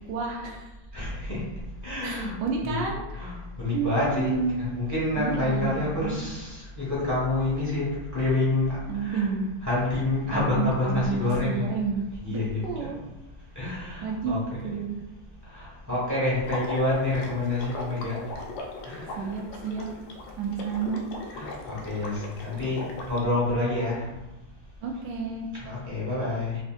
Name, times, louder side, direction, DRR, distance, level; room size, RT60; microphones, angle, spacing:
voice 1, 0.1-0.7 2.0-3.3 3.7-4.6 5.2-6.2 8.9-9.5 10.3-12.0 12.3-13.0 14.0-15.0 19.2-19.9 20.4-21.0 24.8-25.5, right 5 dB, 90° right, -1 dB, 0.9 m, -30 dB
voice 2, 0.9-1.4 1.8-2.3 2.6-2.9 3.1-9.3 9.6-11.7 12.2-12.9 13.5-14.7 15.5-18.2 18.9-19.2 21.3-22.8 23.1-24.0 25.6-26.6, left 2 dB, 20° left, -8 dB, 0.4 m, -28 dB
Water / Liquid, 16.4-23.2, left 2 dB, 75° left, 1.2 m, -39 dB
3.7 x 3.4 x 2.4 m, 1.0 s
omnidirectional pair, 2.4 m